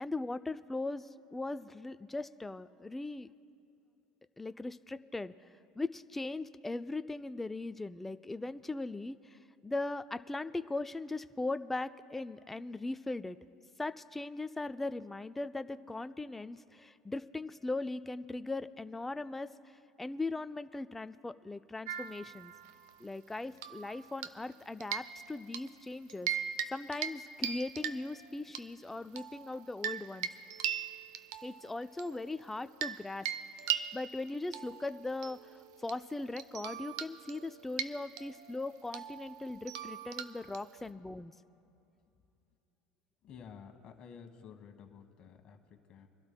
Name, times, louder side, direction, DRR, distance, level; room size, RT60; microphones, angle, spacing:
voice 1, 0.0-3.3 4.4-5.3 5.8-13.4 13.8-22.5 23.0-26.3 26.7-30.3 31.4-33.3 33.7-41.3, left 2 dB, 10° left, 12 dB, 0.4 m, -39 dB
sound 1, 21.9-22.9 23.6-24.5 24.8-25.7 26.1-26.7 26.9-27.2 27.4-28.6 29.2-33.0 33.3-40.9, right 9 dB, 90° right, 0.6 m, -40 dB
voice 2, 43.2-46.1, left 7 dB, 45° left, 5 dB, 1.3 m, -52 dB
28.5 x 12.5 x 2.2 m, 2.7 s
supercardioid pair, 105°, 2 cm